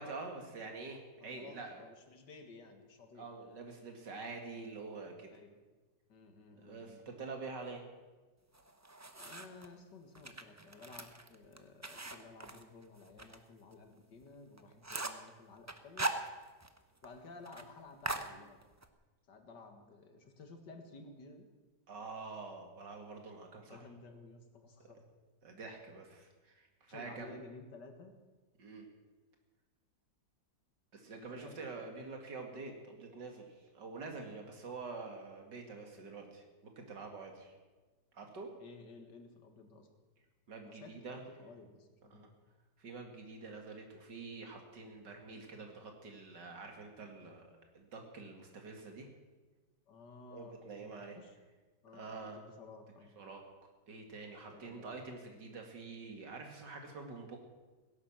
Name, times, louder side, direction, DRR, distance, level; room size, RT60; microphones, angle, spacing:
voice 1, 0.0-1.8 3.2-5.3 6.6-7.8 21.9-23.8 25.4-27.3 28.6-28.9 30.9-37.5 38.1-38.5 40.5-41.2 42.1-42.3 42.8-49.1 50.3-51.2 51.9-52.4 53.2-53.4 53.9-57.4, right 4 dB, 90° right, 3 dB, 2.9 m, -47 dB
voice 2, 1.2-3.3 5.3-5.6 6.1-7.0 9.2-16.1 17.0-18.6 19.3-21.5 23.7-25.0 26.9-28.2 31.2-31.6 38.6-39.9 40.6-42.3 49.9-51.4 51.8-53.1 54.5-55.0, left 3 dB, 85° left, 6 dB, 2.4 m, -54 dB
sound 1, 8.5-9.7 10.1-13.4 13.7-13.8 14.2-14.3 14.6-15.3 15.7-16.8 17.0-17.1 17.4-17.7 18.0-18.9, right 2 dB, 15° right, 0.5 m, -40 dB
16.5 x 11.0 x 7.4 m, 1.3 s
omnidirectional pair, 1.8 m